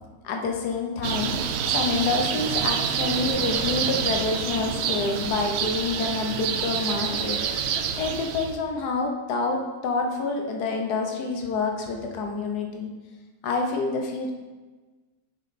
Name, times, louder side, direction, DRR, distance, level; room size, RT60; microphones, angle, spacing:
voice 1, 0.2-1.4 1.7-7.4 8.0-12.9 13.4-14.3, left 4 dB, 85° left, 2 dB, 1.5 m, -27 dB
sound 1, 1.0-8.6, right 7 dB, 80° right, 0.5 m, -27 dB
8.8 x 5.3 x 4.1 m, 1.3 s
omnidirectional pair, 1.7 m